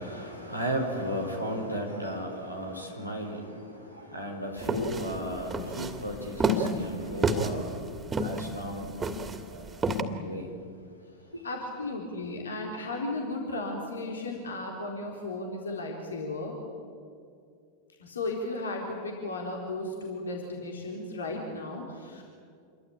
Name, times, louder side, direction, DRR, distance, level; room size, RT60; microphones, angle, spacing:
voice 1, 0.0-3.4 4.1-7.7 8.2-8.9 9.5-9.6 10.2-10.4, equal, 85° left, 3 dB, 4.7 m, -34 dB
sound 1, 4.6-10.0, right 2 dB, 15° right, 2.5 m, -29 dB
voice 2, 11.4-16.6 18.0-22.2, left 2 dB, 70° left, 0 dB, 3.9 m, -35 dB
28.0 x 23.5 x 8.8 m, 2.3 s
figure-of-eight pair, 90°, 0 cm